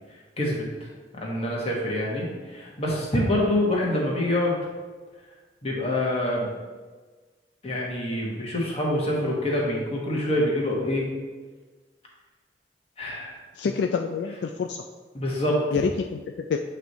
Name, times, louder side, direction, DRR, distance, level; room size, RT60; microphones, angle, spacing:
voice 1, 0.4-0.9 1.2-4.6 5.6-6.5 7.6-11.1 13.0-13.4 15.1-15.8, left 1 dB, 35° left, -3 dB, 1.4 m, -26 dB
voice 2, 13.6-14.8 15.7-16.6, left 5 dB, 70° left, 4 dB, 0.3 m, -27 dB
8.0 x 3.3 x 4.1 m, 1.4 s
head